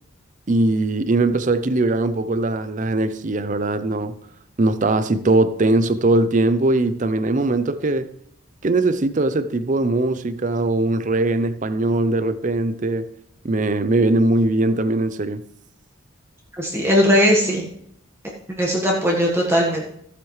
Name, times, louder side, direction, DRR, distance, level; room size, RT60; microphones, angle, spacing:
voice 1, 0.5-4.2 4.6-8.1 8.6-13.0 13.4-15.4, right 2 dB, 35° right, 0.5 m, -20 dB
voice 2, 16.6-17.7 18.6-19.8, equal, 10° right, 1.4 m, -18 dB
15.0 x 8.2 x 3.2 m
head